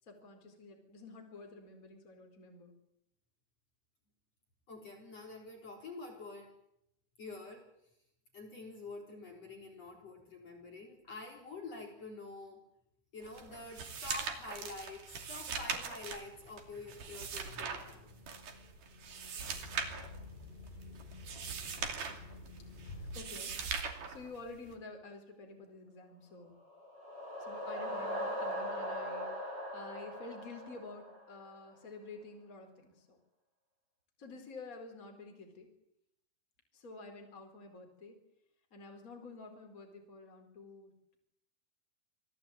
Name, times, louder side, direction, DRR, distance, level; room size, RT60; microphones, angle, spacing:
voice 1, 0.0-2.7 23.0-23.6 24.0-26.5 27.4-33.2 34.2-35.7 36.7-38.2 38.7-41.2, left 3 dB, 20° left, 3 dB, 4.5 m, -50 dB
voice 2, 4.7-6.5 7.2-7.7 8.3-12.6 13.1-18.1, left 3 dB, 40° left, 1 dB, 4.8 m, -47 dB
sound 1, 13.2-24.8, right 6 dB, 55° right, 4.0 m, -41 dB
sound 2, 16.2-23.2, left 2 dB, 80° left, 9.5 m, -51 dB
sound 3, 26.6-31.5, equal, 25° right, 5.8 m, -40 dB
27.5 x 18.5 x 9.0 m, 0.79 s
omnidirectional pair, 4.9 m